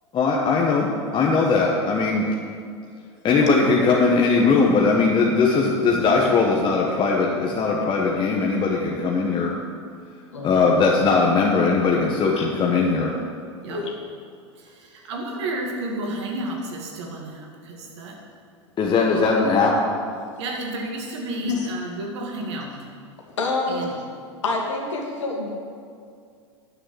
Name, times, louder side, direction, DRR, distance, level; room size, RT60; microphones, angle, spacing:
voice 1, 0.1-2.3 3.2-9.5 10.4-13.1 18.8-19.7, left 4 dB, 30° left, -2 dB, 1.4 m, -20 dB
voice 2, 10.3-10.7 12.4-12.5 13.7-13.9 21.4-21.7 23.2-24.0 24.4-25.5, left 3 dB, 80° left, 0 dB, 2.1 m, -27 dB
voice 3, 14.6-18.2 19.1-19.2 20.4-22.7 23.7-24.0, right 2 dB, 70° right, 0 dB, 2.2 m, -32 dB
9.5 x 6.4 x 7.8 m, 2.3 s
hypercardioid pair, 90°, 15 cm